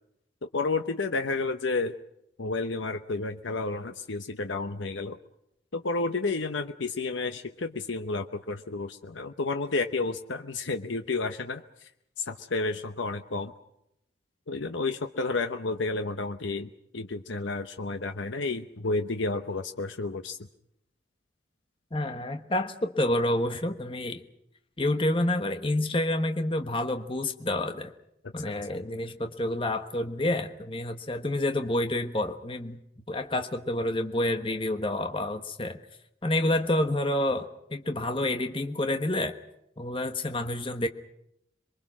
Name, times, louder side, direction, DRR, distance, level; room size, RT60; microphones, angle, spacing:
voice 1, 0.4-2.0 2.4-5.2 5.7-11.9 12.2-13.5 14.5-20.4 28.2-28.5, left 3 dB, 90° left, 7 dB, 0.9 m, -31 dB
voice 2, 21.9-24.2 24.8-27.9 28.3-32.8 33.1-35.8 36.2-39.3 39.8-40.9, left 1 dB, 25° left, 6 dB, 1.2 m, -28 dB
27.0 x 22.5 x 6.2 m, 0.79 s
head